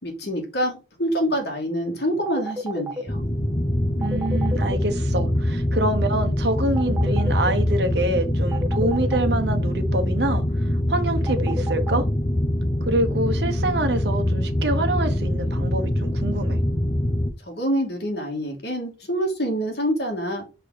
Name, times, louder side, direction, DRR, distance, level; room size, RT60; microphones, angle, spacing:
voice 1, 0.0-3.2 17.5-20.4, equal, 65° left, 2.5 m, -26 dB
sound 1, 2.3-3.0 4.0-4.8 6.8-7.5 8.5-9.3 11.3-12.0, equal, 15° right, 1.0 m, -30 dB
sound 2, 3.1-17.3, left 1 dB, 30° left, 0.8 m, -24 dB
voice 2, 4.0-12.0 12.9-16.6, right 1 dB, 70° right, 1.3 m, -26 dB
5.3 x 4.9 x 4.2 m
head